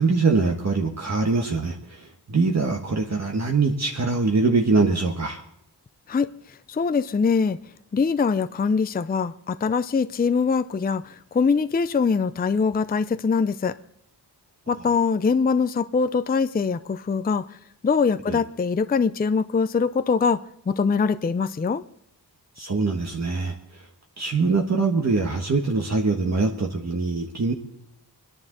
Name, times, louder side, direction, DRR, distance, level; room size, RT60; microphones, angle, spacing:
voice 1, 0.0-5.4 18.3-18.4 22.6-23.8 24.2-27.5, right 3 dB, 40° right, 1.4 m, -23 dB
voice 2, 6.7-7.6 7.9-13.8 14.7-17.6 17.8-21.8, left 5 dB, 25° left, 0.4 m, -23 dB
25.5 x 10.5 x 3.9 m
wide cardioid pair, 145°, 41 cm